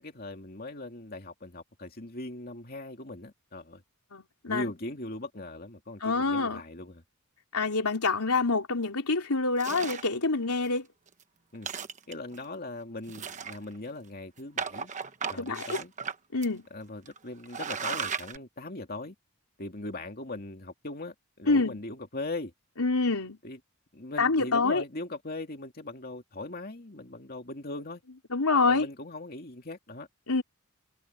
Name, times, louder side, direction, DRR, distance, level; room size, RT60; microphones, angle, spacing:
voice 1, 0.0-3.8 4.5-7.0 11.5-11.7 12.1-14.9 15.3-15.9 16.7-19.1 19.6-22.5 23.4-23.6 23.9-28.0 28.6-30.1, left 2 dB, 45° left, 2.5 m, -40 dB
voice 2, 4.1-4.7 6.0-6.6 7.5-10.9 15.4-15.6 16.3-16.6 21.5-21.8 22.8-23.4 24.2-24.8 28.3-28.9 30.3-30.4, left 3 dB, 85° left, 3.5 m, -26 dB
sound 1, 9.6-10.1 10.7-10.8 11.1-11.2 11.5-12.4 13.1-13.9 14.6-16.1 16.4-16.5 17.0-17.2 17.4-18.4, right 6 dB, 35° right, 1.1 m, -35 dB
head